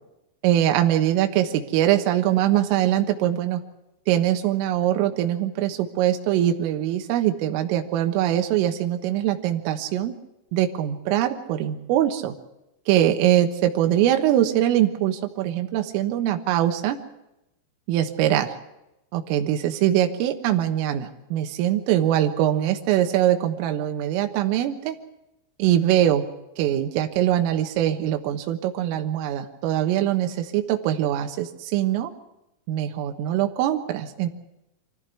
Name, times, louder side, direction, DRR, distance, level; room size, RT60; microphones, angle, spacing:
voice 1, 0.4-3.6 4.1-10.2 10.5-12.3 12.9-17.0 17.9-18.5 19.1-25.0 25.6-26.3 26.6-32.1 32.7-34.3, right 12 dB, 80° right, 6 dB, 3.9 m, -22 dB
24.5 x 15.0 x 8.3 m, 0.90 s
omnidirectional pair, 6.0 m